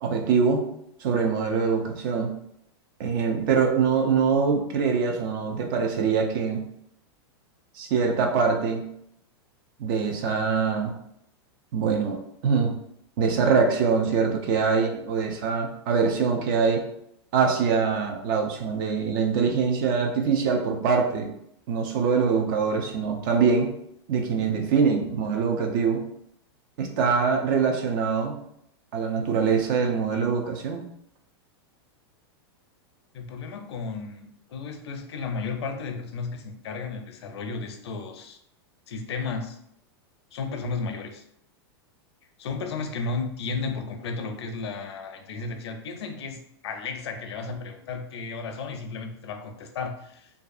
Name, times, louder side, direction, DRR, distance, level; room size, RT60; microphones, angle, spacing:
voice 1, 0.0-0.6 1.0-2.3 3.0-6.6 7.7-8.9 9.8-10.9 11.7-12.2 12.4-12.7 13.2-16.8 17.3-21.3 21.7-23.7 24.1-26.0 26.8-28.4 28.9-30.9, right 5 dB, 55° right, 3 dB, 0.5 m, -23 dB
voice 2, 33.1-38.4 38.9-39.6 40.3-41.2 42.4-50.3, left 4 dB, 85° left, 5 dB, 0.5 m, -33 dB
2.6 x 2.3 x 2.4 m, 0.73 s
hypercardioid pair, 130°, 14 cm